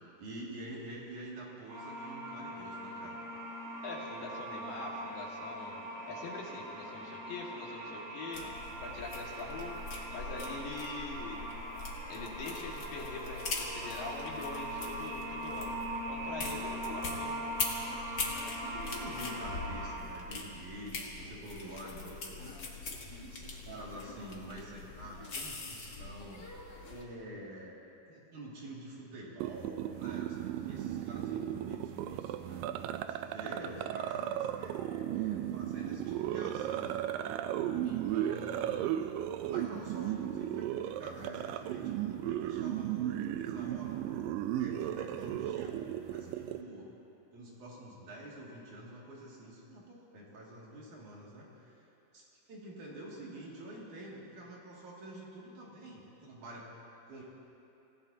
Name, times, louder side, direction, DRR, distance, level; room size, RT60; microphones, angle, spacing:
voice 1, 0.2-3.2 8.3-8.5 8.9-9.0 18.3-22.9 23.2-26.5 26.9-27.7 28.1-32.6 33.2-37.4 37.8-39.1 39.4-44.0 44.5-45.8 46.1-46.9 47.3-51.8 52.1-56.6 57.1-57.2, right 1 dB, 60° right, -5 dB, 3.8 m, -47 dB
sound 1, 1.7-19.9, right 1 dB, 40° right, 3.2 m, -41 dB
voice 2, 3.8-5.8 6.1-8.4 8.8-9.7 10.1-11.4 12.1-15.8 16.1-17.4, left 3 dB, 80° left, -3 dB, 3.7 m, -43 dB
sound 2, 8.3-27.0, left 3 dB, 45° left, 1.4 m, -42 dB
sound 3, 29.4-46.6, right 11 dB, 85° right, 2.3 m, -35 dB
26.5 x 15.5 x 2.8 m, 2.9 s
omnidirectional pair, 4.0 m